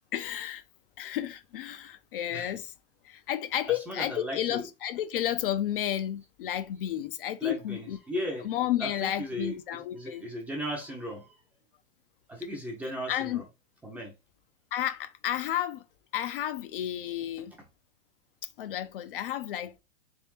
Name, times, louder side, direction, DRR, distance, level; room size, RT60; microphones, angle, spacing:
voice 1, 0.1-0.6 1.0-2.7 3.0-8.0 8.4-10.2 13.1-13.4 14.7-15.8 16.1-17.6 18.6-19.7, left 11 dB, 50° left, 0.5 m, -32 dB
voice 2, 3.7-4.7 7.4-8.5 8.8-11.4 12.3-13.5 13.8-14.2, equal, 5° right, 0.6 m, -37 dB
3.6 x 3.3 x 3.1 m
hypercardioid pair, 155°, 36 cm